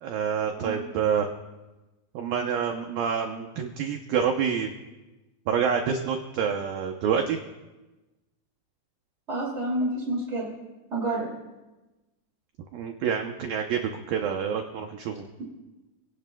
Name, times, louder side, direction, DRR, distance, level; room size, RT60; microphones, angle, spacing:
voice 1, 0.0-1.3 2.1-4.7 5.5-7.4 12.7-15.3, right 7 dB, 85° right, 3 dB, 2.0 m, -27 dB
voice 2, 9.3-10.5 10.9-11.3, right 1 dB, 25° right, -5 dB, 1.7 m, -29 dB
27.0 x 18.0 x 2.3 m, 1.1 s
omnidirectional pair, 5.4 m